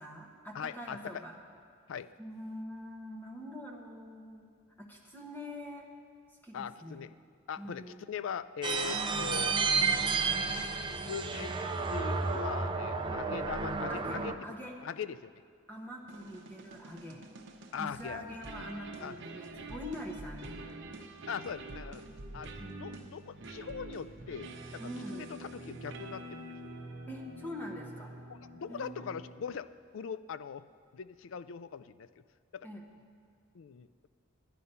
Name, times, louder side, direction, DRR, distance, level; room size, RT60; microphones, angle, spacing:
voice 1, 0.0-1.4 2.2-4.5 4.8-5.9 6.4-7.1 7.6-8.0 8.9-9.6 13.9-14.7 15.7-17.2 17.8-20.9 22.6-22.9 24.8-25.3 27.1-28.1 28.7-29.1 32.6-32.8, equal, 10° left, 0 dB, 1.1 m, -44 dB
voice 2, 0.5-1.2 1.9-2.1 6.5-7.1 7.5-9.7 11.0-11.5 11.9-14.4 14.8-15.3 17.7-18.4 19.0-19.2 19.5-19.7 21.3-22.0 22.3-24.8 25.1-26.7 28.5-30.6 30.9-32.1 32.5-32.7 33.5-34.1, left 7 dB, 65° left, 15 dB, 0.4 m, -41 dB
sound 1, 8.6-14.4, right 4 dB, 25° right, 0.5 m, -31 dB
sound 2, 16.1-29.6, right 2 dB, 60° right, 0.9 m, -47 dB
11.0 x 10.5 x 5.5 m, 2.1 s
head